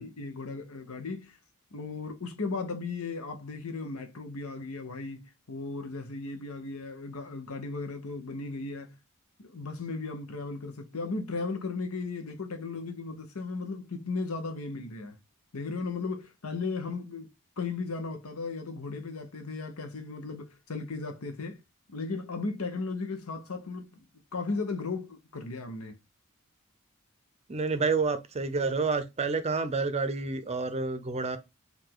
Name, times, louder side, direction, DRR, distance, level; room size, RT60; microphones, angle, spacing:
voice 1, 0.0-1.4 1.7-8.9 9.4-15.1 15.5-21.6 21.9-26.0, left 3 dB, 85° left, 1.0 m, -36 dB
voice 2, 27.5-31.4, right 4 dB, 30° right, 0.5 m, -29 dB
4.8 x 2.7 x 3.8 m
head